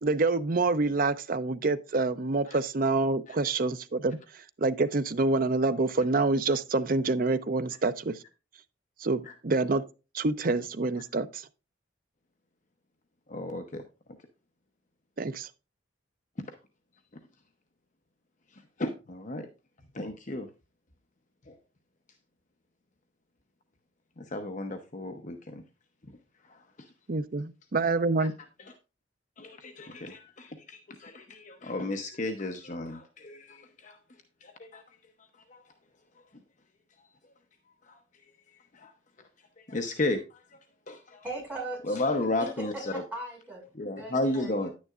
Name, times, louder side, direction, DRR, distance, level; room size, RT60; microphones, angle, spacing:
voice 1, 0.0-4.2 4.6-8.2 9.0-9.8 10.1-11.4 15.2-15.5 27.1-28.3, right 3 dB, 45° right, 0.6 m, -27 dB
voice 2, 13.3-13.8 18.8-19.5 19.9-20.5 21.5-21.6 24.2-25.6 28.2-28.3 29.4-34.0 34.4-34.8 37.9-38.0 38.7-38.9 39.7-40.2 40.9-41.2 41.9-42.9 43.8-44.7, left 2 dB, 40° left, 0.8 m, -33 dB
voice 3, 41.2-42.0 42.4-42.5 42.9-43.6 44.0-44.7, right 2 dB, 10° right, 5.2 m, -39 dB
10.0 x 9.5 x 2.4 m
head